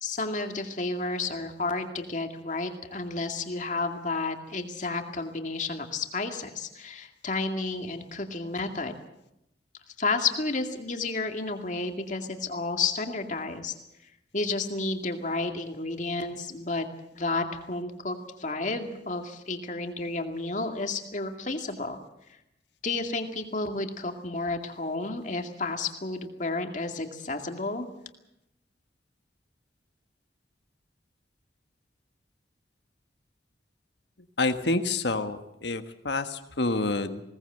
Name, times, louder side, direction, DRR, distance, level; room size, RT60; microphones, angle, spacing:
voice 1, 0.0-9.0 10.0-13.7 14.3-16.9 17.1-22.0 22.8-27.9, left 3 dB, 45° left, 5 dB, 2.2 m, -31 dB
voice 2, 34.4-37.2, left 2 dB, 70° left, 9 dB, 1.5 m, -28 dB
21.0 x 18.5 x 7.9 m, 0.84 s
head